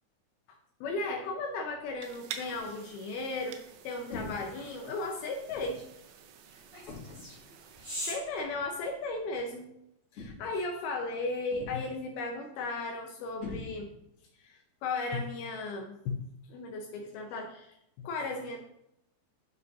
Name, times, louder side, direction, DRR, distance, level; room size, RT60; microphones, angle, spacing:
voice 1, 0.5-5.8 8.0-9.7 10.1-13.9 14.4-16.2 16.5-18.6, left 3 dB, 80° left, 2 dB, 2.3 m, -36 dB
sound 1, 1.8-9.3, equal, 15° right, 1.1 m, -46 dB
sound 2, 2.0-8.2, right 8 dB, 85° right, 2.9 m, -49 dB
sound 3, 4.1-4.6 5.5-5.8 6.9-7.4 8.5-8.7 10.2-10.7 11.5-12.0 13.4-14.1, left 3 dB, 40° left, 2.5 m, -43 dB
11.0 x 5.4 x 2.7 m, 0.81 s
omnidirectional pair, 5.0 m